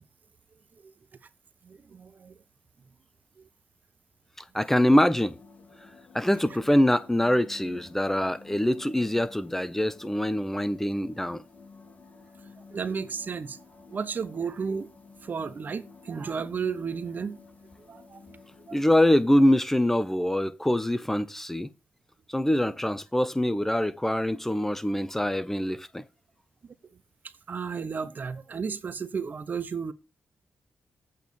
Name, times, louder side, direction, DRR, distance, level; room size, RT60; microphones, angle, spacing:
voice 1, 1.6-2.3 3.4-3.5 12.7-13.6 13.9-14.9 15.2-17.4 17.9-18.2 18.7-18.8 27.5-29.9, right 6 dB, 45° right, 0.9 m, -33 dB
voice 2, 4.5-5.4 6.1-11.4 18.7-21.7 22.3-26.0, left 1 dB, 10° left, 0.7 m, -24 dB
sound 1, 5.1-19.6, left 4 dB, 40° left, 2.7 m, -51 dB
8.3 x 4.4 x 7.0 m
cardioid pair, 80°, 4 cm